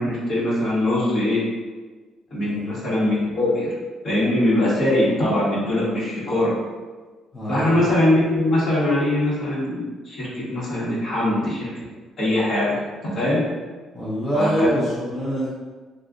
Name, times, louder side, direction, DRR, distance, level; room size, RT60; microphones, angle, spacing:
voice 1, 0.0-1.4 2.3-3.7 4.0-6.5 7.5-11.7 12.2-12.8 13.1-13.4 14.3-14.7, left 1 dB, 45° left, -7 dB, 1.2 m, -21 dB
voice 2, 2.4-2.7 7.3-7.7 13.9-15.5, equal, 15° left, -8 dB, 0.7 m, -24 dB
2.3 x 2.3 x 3.7 m, 1.3 s
cardioid pair, 115°, 0 cm